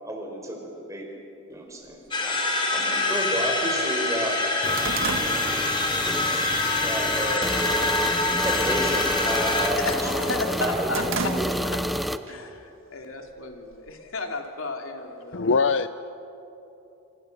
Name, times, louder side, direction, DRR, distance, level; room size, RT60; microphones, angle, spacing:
voice 1, 0.0-1.1 1.5-2.4 2.7-4.4 5.1-5.4 6.8-7.5 8.4-11.7, equal, 15° right, 2 dB, 4.4 m, -31 dB
sound 1, 1.9-2.0 2.9-3.0 3.4-3.5 3.9-6.3 6.7-7.0 7.4-7.9 8.2-8.5 8.8-10.1 10.4-11.9 12.3-12.4 13.3-14.2, right 4 dB, 80° right, 1.6 m, -34 dB
sound 2, 2.1-9.7, left 2 dB, 25° left, 3.2 m, -25 dB
sound 3, 4.6-12.2, equal, ahead, 0.6 m, -30 dB
voice 2, 9.8-11.0 11.3-11.8 12.3-15.5, left 3 dB, 90° left, 3 dB, 2.8 m, -33 dB
voice 3, 15.3-15.9, left 4 dB, 60° left, 13 dB, 0.5 m, -21 dB
28.0 x 27.0 x 6.7 m, 3.0 s
head